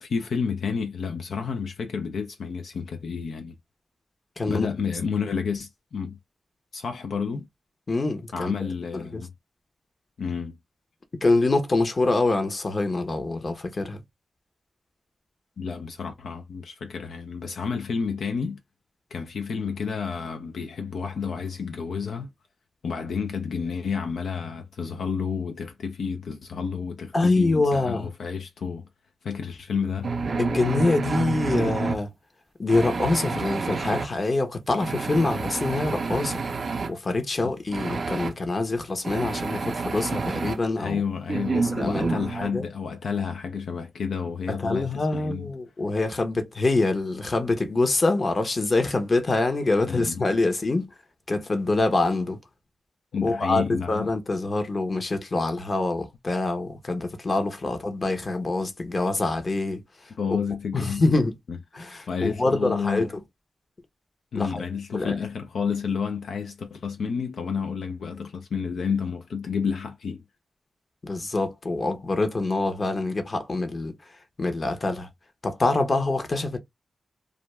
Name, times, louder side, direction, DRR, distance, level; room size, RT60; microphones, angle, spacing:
voice 1, 0.0-3.6 4.5-6.2 6.7-7.5 8.3-9.3 10.2-10.6 15.6-18.6 19.1-22.3 22.8-28.8 29.2-30.1 33.3-33.4 40.8-45.5 49.8-50.2 53.1-54.1 60.2-61.0 61.5-61.6 62.1-63.1 64.3-70.2, left 6 dB, 80° left, 0.4 m, -30 dB
voice 2, 4.4-4.7 7.9-8.5 8.9-9.2 11.2-14.0 27.1-28.1 30.4-32.1 32.6-36.4 36.9-41.0 41.5-42.6 44.5-50.9 51.3-52.4 53.2-60.4 60.7-61.4 61.7-63.1 64.3-64.6 64.9-65.1 71.0-73.9 74.4-75.1 75.4-76.6, left 2 dB, 45° left, 0.9 m, -25 dB
sound 1, 30.0-32.0 32.7-34.1 34.8-36.9 37.7-38.3 39.0-40.6 41.3-42.5, right 4 dB, 65° right, 0.5 m, -29 dB
2.5 x 2.3 x 3.2 m
cardioid pair, 55°, 0 cm